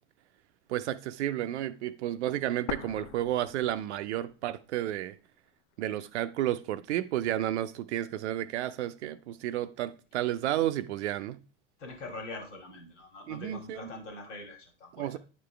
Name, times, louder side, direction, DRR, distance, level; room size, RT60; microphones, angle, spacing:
voice 1, 0.7-5.2 5.8-11.4 13.3-13.9 14.9-15.2, right 13 dB, 65° right, 0.6 m, -32 dB
sound 1, 2.7-4.6 4.9-5.0 5.7-6.7, left 9 dB, 45° left, 0.6 m, -42 dB
voice 2, 11.8-15.2, left 2 dB, 75° left, 2.3 m, -43 dB
9.4 x 5.1 x 3.3 m
figure-of-eight pair, 85°, 36 cm